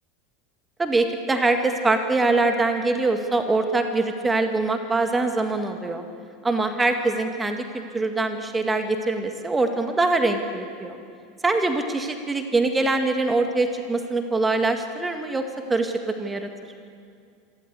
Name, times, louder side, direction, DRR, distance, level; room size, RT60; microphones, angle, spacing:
voice 1, 0.8-6.0 6.4-11.0 11.4-16.5, right 3 dB, 15° right, 5 dB, 1.9 m, -23 dB
26.5 x 14.0 x 8.4 m, 2.3 s
hypercardioid pair, 85°, 0 cm